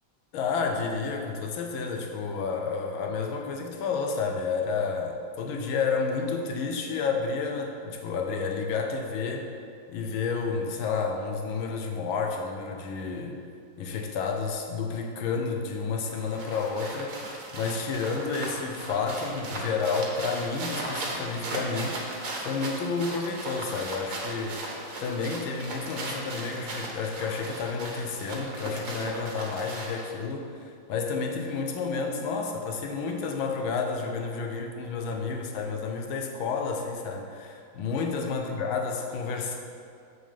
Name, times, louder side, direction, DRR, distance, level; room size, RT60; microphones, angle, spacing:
voice 1, 0.3-9.5 9.9-13.4 13.8-17.2 17.5-24.6 25.0-39.6, left 4 dB, 75° left, 2 dB, 1.7 m, -30 dB
sound 1, 16.0-30.1, right 2 dB, 45° right, 1.5 m, -37 dB
sound 2, 16.1-25.3, right 1 dB, 55° left, 1.6 m, -53 dB
7.8 x 6.3 x 5.2 m, 2.3 s
omnidirectional pair, 2.3 m